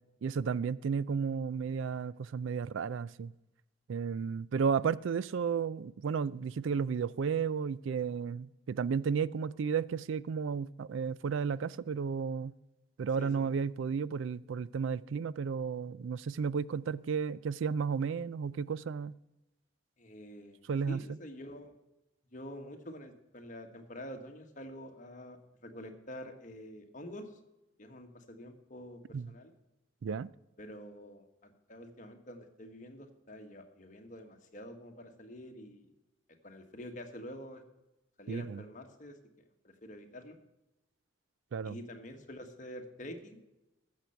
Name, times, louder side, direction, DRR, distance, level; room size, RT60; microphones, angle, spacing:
voice 1, 0.2-3.3 3.9-12.5 13.0-19.2 20.7-21.0 29.1-29.3 30.0-30.3 38.3-38.6 41.5-41.8, right 6 dB, 70° right, 0.4 m, -33 dB
voice 2, 13.2-13.5 20.0-20.6 20.9-21.8 22.3-27.3 27.8-29.0 29.3-29.5 30.6-35.9 36.4-37.6 38.2-39.2 39.6-40.4 41.6-43.4, equal, 40° left, 1.4 m, -47 dB
15.0 x 6.7 x 5.7 m
head